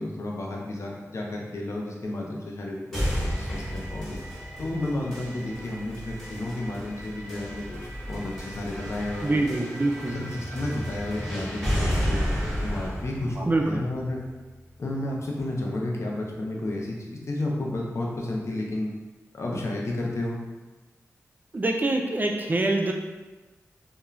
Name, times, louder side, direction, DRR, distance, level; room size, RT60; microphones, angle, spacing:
voice 1, 0.0-4.2 4.6-9.4 10.1-14.2 14.8-18.9 19.3-20.4, left 1 dB, 55° left, -2 dB, 0.5 m, -32 dB
sound 1, 2.9-14.9, equal, 5° left, 1.1 m, -32 dB
voice 2, 9.2-10.2 13.4-13.8 21.5-22.9, right 2 dB, 35° right, 2 dB, 0.3 m, -25 dB
2.4 x 2.2 x 3.0 m, 1.2 s
cardioid pair, 60°, 6 cm